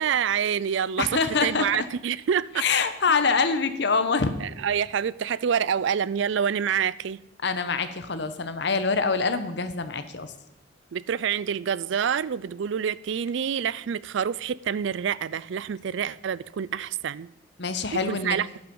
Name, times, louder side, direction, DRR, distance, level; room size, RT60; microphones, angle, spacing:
voice 1, 0.0-2.6 4.4-7.2 10.9-17.3 17.9-18.5, right 8 dB, 65° right, 0.4 m, -27 dB
voice 2, 1.0-1.9 2.6-4.3 7.4-10.3 17.6-18.4, left 4 dB, 60° left, 1.0 m, -25 dB
12.0 x 10.5 x 5.4 m
head